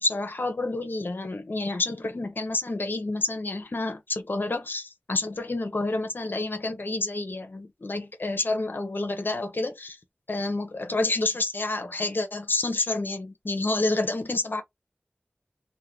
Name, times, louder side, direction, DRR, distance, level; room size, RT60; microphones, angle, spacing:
voice 1, 0.0-10.0 10.3-14.6, left 2 dB, 60° left, 0.6 m, -29 dB
2.4 x 2.1 x 3.1 m
wide cardioid pair, 60°, 4 cm